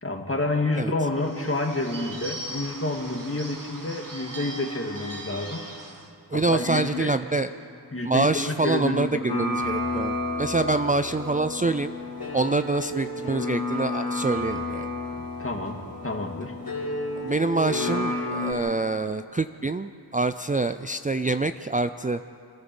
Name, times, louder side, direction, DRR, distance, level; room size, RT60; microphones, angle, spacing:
voice 1, 0.0-5.7 6.3-7.2 7.9-9.3 15.2-15.8 16.0-16.5, left 2 dB, 35° left, 2 dB, 2.3 m, -29 dB
Bird / Bell, 1.1-6.1, right 1 dB, 55° right, 2.4 m, -39 dB
voice 2, 6.3-7.5 8.0-11.9 12.3-14.9 17.2-22.2, right 3 dB, 20° right, 10 dB, 0.5 m, -26 dB
sound 1, 9.3-18.5, left 2 dB, 65° left, 3.4 m, -31 dB
26.5 x 14.0 x 7.1 m, 2.5 s
wide cardioid pair, 65°, 39 cm